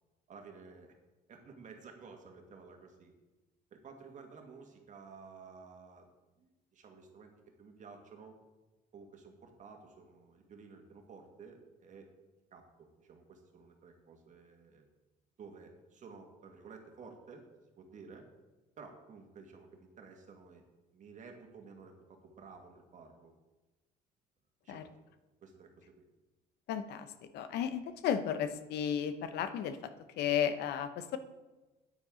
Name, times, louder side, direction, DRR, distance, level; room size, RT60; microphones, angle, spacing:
voice 1, 0.3-0.9 1.3-3.1 3.7-6.1 6.4-7.3 7.6-8.4 8.9-12.1 12.5-14.8 15.4-17.4 17.8-18.3 18.8-20.6 20.9-23.3 24.6-24.9 25.4-26.0, right 5 dB, 50° right, 3 dB, 1.8 m, -53 dB
voice 2, 26.7-31.2, left 9 dB, 75° left, 11 dB, 0.8 m, -34 dB
9.1 x 9.0 x 3.8 m, 1.1 s
cardioid pair, 110°, 17 cm